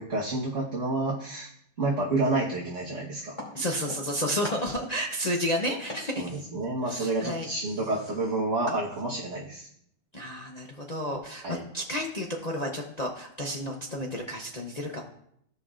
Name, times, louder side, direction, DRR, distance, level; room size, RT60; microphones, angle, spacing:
voice 1, 0.0-1.5 1.8-3.4 6.2-9.7 11.4-11.6, right 2 dB, 45° right, -5 dB, 1.5 m, -29 dB
sound 1, 3.4-4.2 4.4-9.3, left 1 dB, 20° left, 2.6 m, -43 dB
voice 2, 3.5-6.3 6.8-7.5 10.1-15.0, equal, 40° left, 0 dB, 0.6 m, -31 dB
15.5 x 5.4 x 2.5 m, 0.70 s
omnidirectional pair, 1.8 m